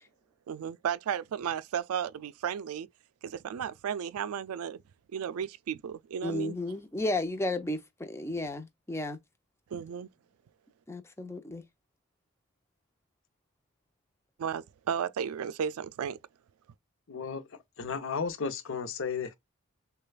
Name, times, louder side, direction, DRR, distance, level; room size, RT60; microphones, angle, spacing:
voice 1, 0.5-2.9 3.2-4.8 5.1-6.5 9.7-10.1 14.4-16.2, right 8 dB, 85° right, 0.3 m, -34 dB
voice 2, 6.2-9.2 10.9-11.6, left 2 dB, 10° left, 0.6 m, -33 dB
voice 3, 17.1-17.4 17.8-19.3, left 5 dB, 60° left, 0.7 m, -33 dB
6.4 x 2.3 x 2.3 m
head